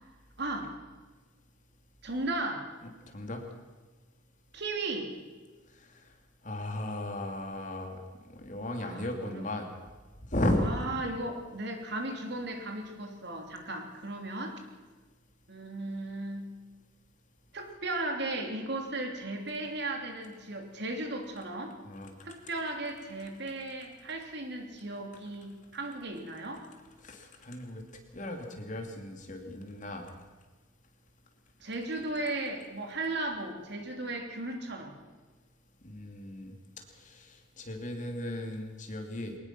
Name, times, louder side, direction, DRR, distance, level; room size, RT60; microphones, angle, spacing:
voice 1, 0.4-0.7 2.0-2.7 4.5-5.1 8.8-9.4 10.6-14.6 15.5-16.5 17.5-21.8 22.2-26.7 31.6-35.0, right 2 dB, 60° right, 4 dB, 3.2 m, -36 dB
voice 2, 3.1-3.4 5.8-6.0 6.4-8.0 8.3-9.7 10.3-10.7 21.8-22.1 27.0-27.8 28.1-30.1 35.8-36.5 37.0-39.4, left 1 dB, 40° left, 4 dB, 2.9 m, -35 dB
22.0 x 19.5 x 6.1 m, 1.3 s
head